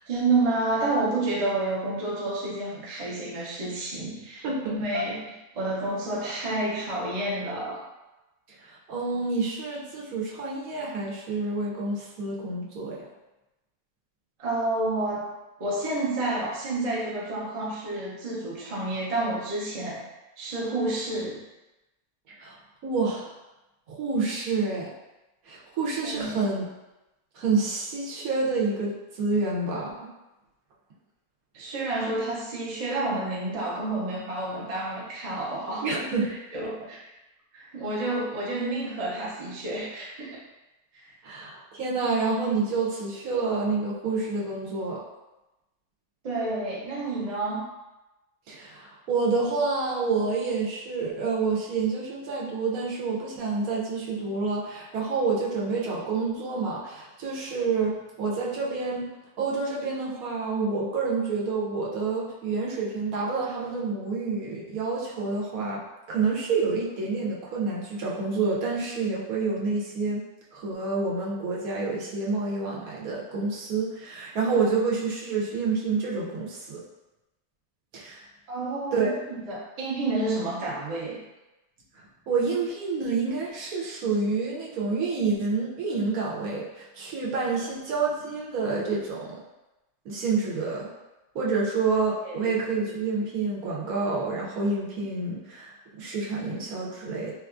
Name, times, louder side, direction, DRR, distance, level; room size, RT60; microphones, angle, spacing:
voice 1, 0.1-7.8 14.4-15.3 15.6-20.1 20.4-21.4 26.0-26.4 31.5-35.9 36.5-37.1 37.5-40.4 40.9-41.1 46.2-47.7 78.5-81.2 92.2-92.5, right 2 dB, 35° right, -6 dB, 0.6 m, -29 dB
voice 2, 4.4-5.1 8.7-13.1 22.4-22.5 22.8-23.3 23.9-24.9 25.5-26.6 27.3-30.1 35.8-36.3 41.2-45.0 48.5-59.1 59.4-65.8 66.1-70.2 70.5-76.8 77.9-78.2 78.9-79.1 82.0-89.4 90.0-90.9 91.3-97.3, right 4 dB, 75° right, -4 dB, 1.1 m, -28 dB
3.8 x 2.3 x 2.4 m, 1.0 s
omnidirectional pair, 1.6 m